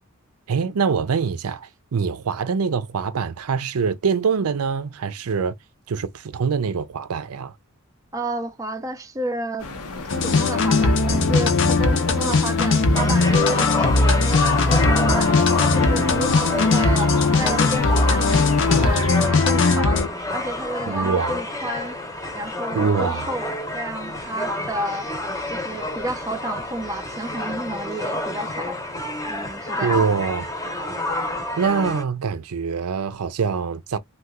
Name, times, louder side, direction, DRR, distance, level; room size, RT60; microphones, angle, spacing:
voice 1, 0.5-5.5 5.9-7.5 20.9-21.4 22.7-23.3 29.8-30.5 31.6-34.0, right 5 dB, 85° right, 0.5 m, -24 dB
voice 2, 8.1-9.7 10.2-15.4 15.7-20.0 20.3-22.0 22.3-25.1 25.5-28.8 29.3-30.0, right 1 dB, 15° right, 0.4 m, -31 dB
sound 1, 9.6-19.3, left 3 dB, 90° left, 0.8 m, -35 dB
sound 2, 10.1-20.1, left 3 dB, 55° left, 0.6 m, -19 dB
sound 3, 12.9-32.0, left 1 dB, 15° left, 0.7 m, -29 dB
2.8 x 2.3 x 3.5 m
head